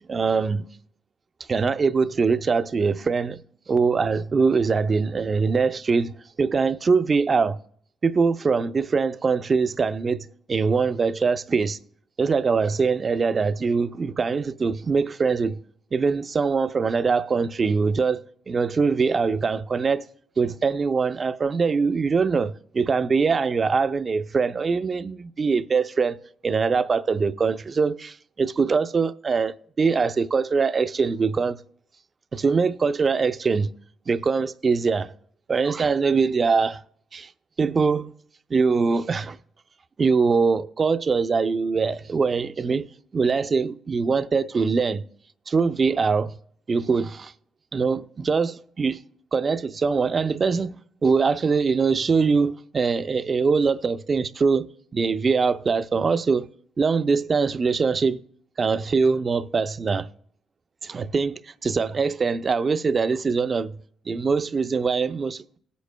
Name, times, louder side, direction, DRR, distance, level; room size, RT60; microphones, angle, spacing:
voice 1, 0.1-0.7 1.5-7.6 8.0-11.8 12.2-15.6 15.9-20.0 20.4-26.2 26.4-31.6 32.3-33.7 34.1-35.1 35.5-36.8 37.1-37.3 37.6-38.1 38.5-39.4 40.0-45.0 45.5-46.3 46.7-47.3 47.7-49.0 49.3-54.7 54.9-56.5 56.8-58.2 58.6-60.1 60.8-63.8 64.1-65.6, right 5 dB, 40° right, 0.5 m, -23 dB
18.5 x 8.3 x 2.2 m
supercardioid pair, 60°, 0 cm